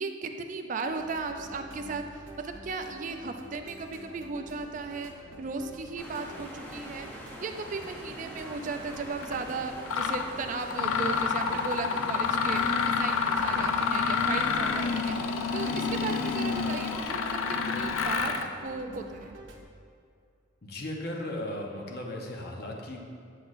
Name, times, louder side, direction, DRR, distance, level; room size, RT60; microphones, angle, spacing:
voice 1, 0.0-5.1 5.4-7.1 7.4-15.2 15.5-19.4, right 4 dB, 40° right, 6 dB, 0.3 m, -36 dB
sound 1, 0.9-19.6, right 1 dB, 70° right, 0.7 m, -48 dB
sound 2, 6.0-17.0, equal, 10° left, 0.7 m, -44 dB
Mechanisms, 9.2-9.4 9.9-10.2 10.7-18.5, left 5 dB, 85° left, 0.4 m, -28 dB
voice 2, 20.6-23.0, left 1 dB, 50° left, 0 dB, 0.8 m, -36 dB
7.7 x 6.0 x 2.5 m, 2.4 s
head